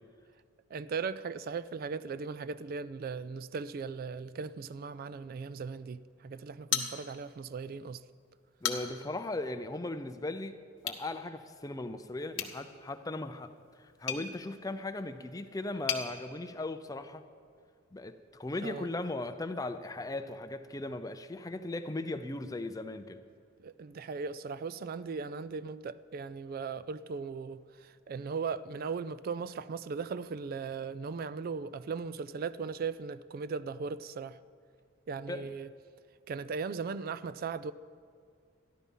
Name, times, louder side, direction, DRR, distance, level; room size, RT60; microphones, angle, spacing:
voice 1, 0.7-8.0 18.6-18.9 23.6-34.4 35.1-35.7 36.3-37.7, right 5 dB, 45° right, 0.3 m, -38 dB
sound 1, 6.7-7.5 7.8-7.9 8.4-9.1 10.8-11.1 12.3-16.1, left 8 dB, 60° left, 1.0 m, -37 dB
voice 2, 8.6-10.5 10.8-13.5 13.8-17.2 17.9-23.2 35.3-35.5, left 2 dB, 15° left, 0.5 m, -38 dB
13.5 x 11.5 x 5.4 m
head